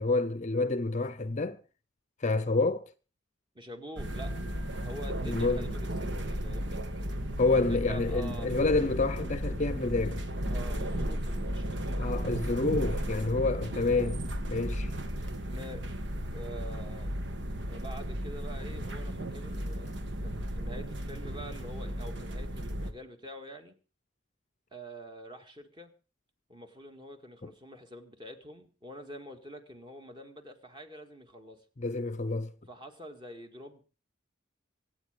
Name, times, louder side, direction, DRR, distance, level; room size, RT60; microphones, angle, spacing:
voice 1, 0.0-1.6 2.2-2.9 5.2-5.6 7.4-10.2 12.0-14.2 14.5-14.9 27.4-27.5 31.8-32.5, left 3 dB, 35° left, 0.7 m, -28 dB
voice 2, 3.5-4.4 4.8-6.8 7.5-8.5 10.5-12.1 15.5-15.9 16.3-17.1 17.7-23.7 24.7-25.9 26.5-31.7 32.7-33.8, right 1 dB, 25° right, 2.0 m, -46 dB
sound 1, 4.0-22.9, equal, 65° right, 1.5 m, -34 dB
24.5 x 9.0 x 5.1 m
head